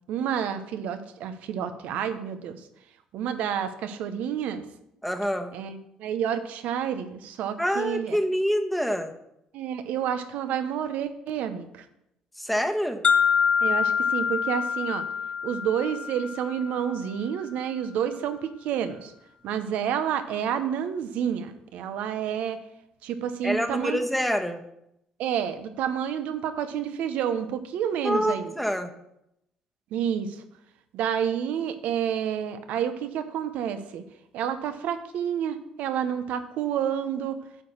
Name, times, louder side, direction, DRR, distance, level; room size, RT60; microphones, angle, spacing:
voice 1, 0.1-2.6 3.1-4.6 5.5-8.2 9.5-11.8 13.6-15.0 15.4-19.1 19.4-22.6 23.0-24.0 25.2-28.5 29.9-30.4 30.9-34.0 34.3-37.4, right 9 dB, 70° right, 10 dB, 0.9 m, -29 dB
voice 2, 5.0-5.5 7.6-9.1 12.4-13.0 23.4-24.6 28.0-28.9, equal, ahead, 5 dB, 1.2 m, -26 dB
sound 1, 13.0-17.0, left 6 dB, 40° left, 0.7 m, -25 dB
8.2 x 4.9 x 7.1 m, 0.81 s
supercardioid pair, 65°, 3 cm